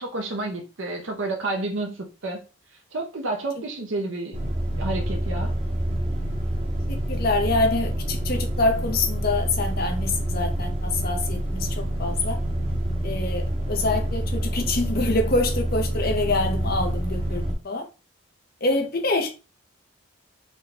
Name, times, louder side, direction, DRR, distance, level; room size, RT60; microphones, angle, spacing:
voice 1, 0.0-2.4 2.9-5.5, right 2 dB, 65° right, 0.7 m, -30 dB
sound 1, 4.3-17.6, right 1 dB, 30° right, 0.8 m, -27 dB
voice 2, 6.9-12.4 13.0-17.9 18.6-19.3, left 2 dB, 45° left, 0.7 m, -26 dB
3.9 x 2.2 x 3.3 m
head